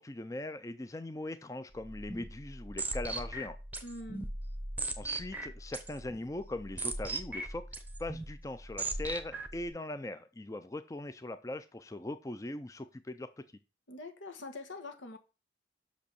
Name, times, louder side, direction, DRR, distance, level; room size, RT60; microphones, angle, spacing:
voice 1, 0.0-3.6 5.0-7.6 8.0-13.3, left 2 dB, 15° left, 0.4 m, -40 dB
sound 1, 1.7-9.7, right 2 dB, 10° right, 0.8 m, -39 dB
voice 2, 3.8-4.3 13.9-15.2, left 2 dB, 85° left, 1.5 m, -44 dB
6.3 x 5.2 x 6.8 m
head